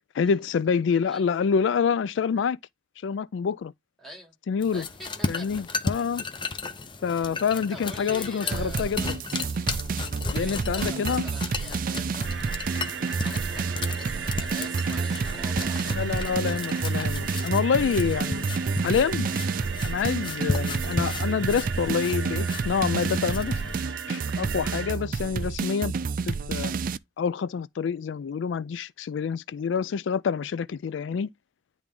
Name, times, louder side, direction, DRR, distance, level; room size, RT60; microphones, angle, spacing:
voice 1, 0.1-2.6 3.0-3.7 4.5-4.9 5.3-6.2 7.0-9.2 10.3-11.2 15.9-18.4 18.8-19.3 19.8-23.6 24.1-25.9 26.3-26.7 27.2-31.3, left 6 dB, 80° left, 0.3 m, -27 dB
voice 2, 4.0-4.3 4.7-5.7 5.9-6.0 7.5-9.1 10.3-12.3 13.2-15.8 18.1-18.6, right 1 dB, ahead, 2.9 m, -45 dB
sound 1, 4.6-23.8, left 3 dB, 25° left, 0.8 m, -35 dB
sound 2, 8.5-27.0, right 4 dB, 50° right, 0.4 m, -29 dB
sound 3, 12.2-24.9, right 6 dB, 70° right, 0.8 m, -37 dB
10.5 x 3.6 x 3.7 m
head